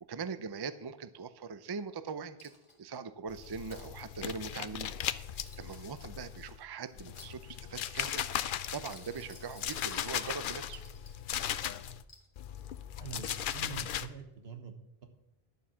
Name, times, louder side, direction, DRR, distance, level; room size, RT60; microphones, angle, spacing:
voice 1, 0.1-2.5 2.8-4.9 5.3-8.3 8.7-10.8, right 5 dB, 35° right, 13 dB, 0.4 m, -41 dB
Coin (dropping), 2.4-3.0 3.4-3.9 5.0-6.2 6.8-7.8 8.7-10.1 10.7-11.2 11.6-12.3, left 2 dB, 30° left, 1.5 m, -56 dB
sound 1, 3.3-6.6 6.9-12.0 12.4-14.1, left 10 dB, 60° left, 0.6 m, -38 dB
voice 2, 13.0-15.1, right 5 dB, 75° right, 6 dB, 1.5 m, -45 dB
10.5 x 7.2 x 6.1 m, 0.89 s
omnidirectional pair, 1.0 m